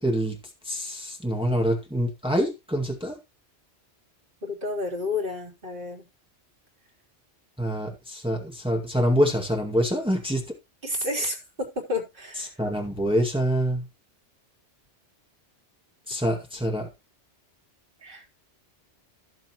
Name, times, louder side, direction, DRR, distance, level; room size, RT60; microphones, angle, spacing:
voice 1, 0.0-0.4 0.6-3.2 7.6-10.4 12.6-13.9 16.1-16.9, equal, 5° right, 1 dB, 2.0 m, -25 dB
voice 2, 4.4-6.1 10.8-12.6 18.0-18.4, left 2 dB, 50° right, -2 dB, 3.9 m, -31 dB
15.5 x 7.2 x 3.0 m, 0.25 s
omnidirectional pair, 1.2 m